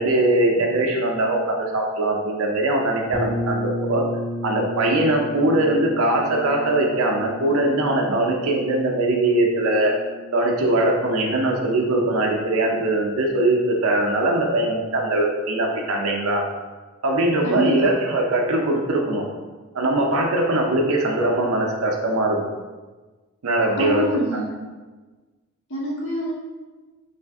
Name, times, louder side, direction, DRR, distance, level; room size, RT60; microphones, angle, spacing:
voice 1, 0.0-4.0 4.4-9.9 10.3-16.4 17.0-19.3 19.7-22.4 23.4-24.1, right 1 dB, 75° right, 0 dB, 0.5 m, -21 dB
sound 1, 3.1-12.8, equal, 10° right, 0.3 m, -33 dB
voice 2, 17.4-17.9 23.8-24.5 25.7-26.3, right 1 dB, 60° left, -4 dB, 0.9 m, -25 dB
3.2 x 2.5 x 3.4 m, 1.3 s
head